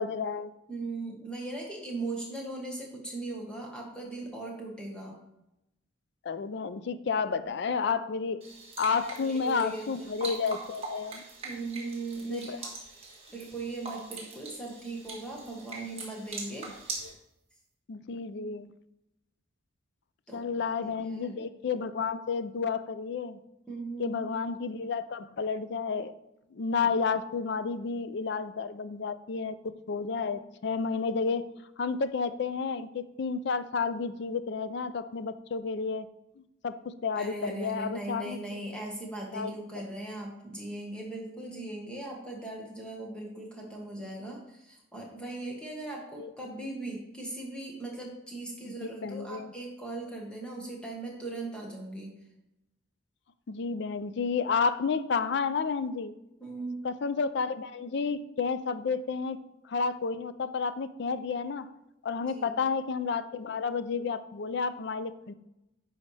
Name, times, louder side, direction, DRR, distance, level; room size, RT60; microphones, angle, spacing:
voice 1, 0.0-0.5 6.2-8.4 8.8-11.2 12.3-12.6 17.0-17.1 17.9-18.7 20.3-23.4 24.0-26.1 26.5-29.5 29.9-31.4 31.8-36.1 36.6-38.6 39.3-39.5 46.2-46.3 48.6-49.5 53.5-56.1 56.8-59.4 59.6-61.7 62.0-65.3, left 5 dB, 55° left, 13 dB, 0.4 m, -31 dB
voice 2, 0.7-5.1 9.0-10.1 11.4-12.7 13.3-16.7 20.3-20.4 21.0-21.3 23.7-24.2 37.1-52.1 56.4-56.8 62.3-62.6, right 2 dB, 5° left, -2 dB, 1.3 m, -39 dB
sound 1, 8.4-17.1, right 3 dB, 30° right, 1.5 m, -42 dB
10.5 x 4.2 x 3.3 m, 0.88 s
head